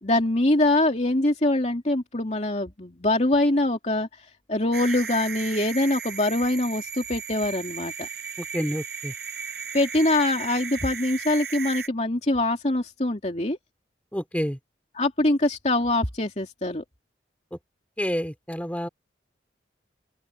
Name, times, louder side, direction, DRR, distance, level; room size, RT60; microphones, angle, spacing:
voice 1, 0.0-4.1 4.5-8.1 9.7-13.6 14.9-16.8, left 1 dB, 40° left, 2.8 m, -24 dB
sound 1, 4.7-11.9, right 6 dB, 65° right, 5.4 m, -36 dB
voice 2, 8.5-9.1 14.1-14.6 18.0-18.9, equal, 10° left, 4.1 m, -28 dB
open air
head